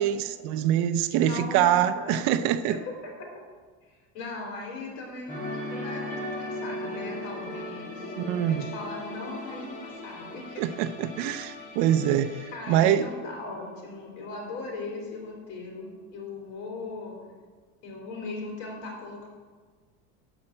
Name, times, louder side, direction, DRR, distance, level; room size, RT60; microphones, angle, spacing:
voice 1, 0.0-2.8 8.2-8.7 10.6-13.1, right 10 dB, 55° right, 11 dB, 0.6 m, -24 dB
voice 2, 1.2-2.2 2.7-3.3 3.8-8.1 8.5-10.6 12.5-17.2 17.8-19.3, left 3 dB, 75° left, 0 dB, 3.3 m, -38 dB
sound 1, 5.3-14.0 14.2-14.5, left 1 dB, 35° left, 2.4 m, -38 dB
12.0 x 4.5 x 7.7 m, 1.5 s
cardioid pair, 180°, 35 cm